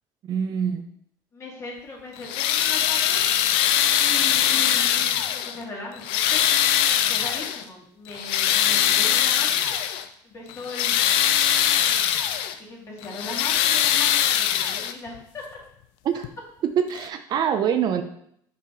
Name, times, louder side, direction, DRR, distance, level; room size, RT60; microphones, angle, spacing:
voice 1, 0.3-0.8 16.1-16.2 16.8-18.0, right 8 dB, 50° right, 8 dB, 0.5 m, -24 dB
voice 2, 1.3-3.3 4.0-6.4 7.1-9.8 10.2-12.2 12.6-15.6, left 2 dB, 30° left, -2 dB, 2.1 m, -38 dB
sound 1, 2.2-5.6 6.0-7.6 8.1-10.0 10.5-12.5 13.0-15.2 16.2-16.3 17.0-17.1, left 10 dB, 75° left, 0.5 m, -22 dB
5.5 x 4.9 x 3.8 m, 0.71 s
cardioid pair, 115°, 9 cm